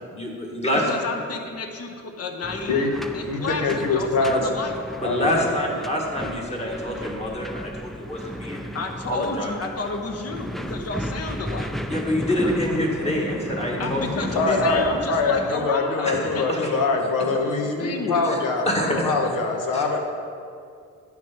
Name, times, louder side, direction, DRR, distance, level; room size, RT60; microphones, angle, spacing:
voice 1, 0.1-0.8 4.3-4.4 5.0-8.8 9.1-9.5 11.9-14.6 16.0-16.7 18.3-18.4 18.6-19.1 19.7-19.8, left 1 dB, 20° left, -2 dB, 1.6 m, -26 dB
voice 2, 0.7-3.6 3.9-4.8 8.7-11.7 13.8-16.5 17.2-17.3 17.8-18.3, left 4 dB, 50° left, 4 dB, 1.1 m, -31 dB
sound 1, 2.4-15.5, equal, ahead, 0.3 m, -34 dB
voice 3, 3.3-4.6 5.0-5.4 12.4-12.5 13.0-13.3 13.8-14.1 14.3-20.0, left 3 dB, 90° left, 3 dB, 1.3 m, -24 dB
10.5 x 6.0 x 5.9 m, 2.3 s
cardioid pair, 130°, 31 cm